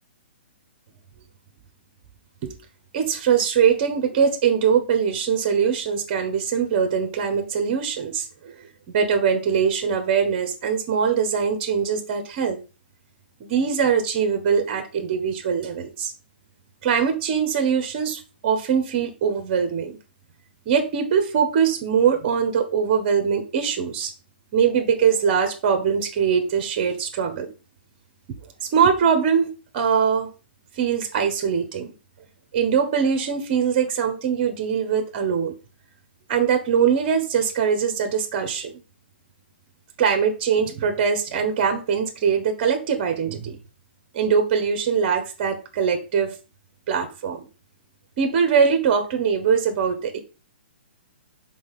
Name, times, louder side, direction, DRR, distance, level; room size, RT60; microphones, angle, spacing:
voice 1, 2.9-12.6 13.4-16.1 16.8-20.0 20.6-24.1 24.5-27.5 28.7-30.3 30.8-31.9 32.5-35.5 36.3-38.7 40.0-43.6 44.1-46.3 46.9-47.5 48.2-50.2, right 7 dB, 35° right, 6 dB, 1.4 m, -22 dB
6.1 x 4.1 x 5.8 m, 0.31 s
hypercardioid pair, 155°, 6 cm